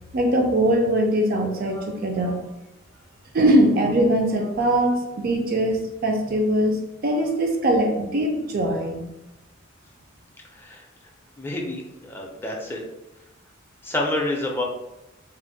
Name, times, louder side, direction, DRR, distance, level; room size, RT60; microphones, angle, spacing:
voice 1, 0.1-2.4 3.3-9.1, right 1 dB, 45° right, 3 dB, 0.4 m, -21 dB
voice 2, 11.4-12.8 13.8-14.6, left 1 dB, 10° left, -1 dB, 0.4 m, -28 dB
2.5 x 2.0 x 3.9 m, 0.95 s
head